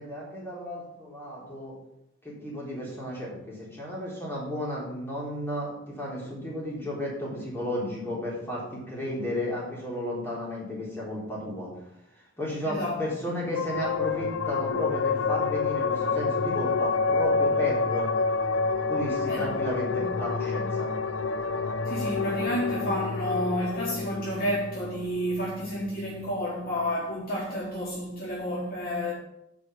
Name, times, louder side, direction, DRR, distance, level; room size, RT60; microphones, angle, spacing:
voice 1, 0.0-1.8 2.2-11.7 12.4-18.1 18.9-20.9, equal, 10° left, 4.1 m, -33 dB
voice 2, 12.6-13.3 19.3-19.5 19.8-20.1 21.9-29.1, equal, 50° left, 4.3 m, -30 dB
sound 1, 13.5-26.4, left 4 dB, 80° left, 0.6 m, -28 dB
10.0 x 6.2 x 6.0 m
head